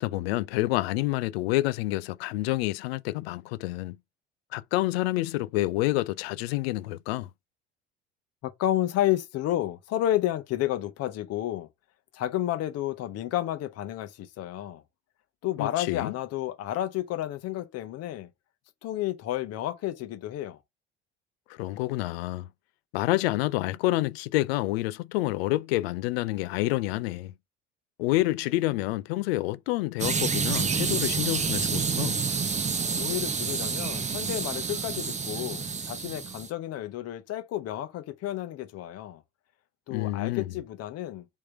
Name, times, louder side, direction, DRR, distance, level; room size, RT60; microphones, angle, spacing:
voice 1, 0.0-4.0 4.5-7.3 15.6-16.1 21.5-22.5 22.9-27.3 28.0-32.2 39.9-40.4, left 18 dB, 65° left, 0.5 m, -28 dB
voice 2, 8.4-11.7 12.1-14.8 15.4-18.3 18.8-20.6 32.9-39.2 39.9-41.3, left 13 dB, 45° left, 0.9 m, -31 dB
sound 1, 30.0-36.5, right 5 dB, 20° right, 0.8 m, -29 dB
3.6 x 3.3 x 4.5 m
figure-of-eight pair, 65°, 33 cm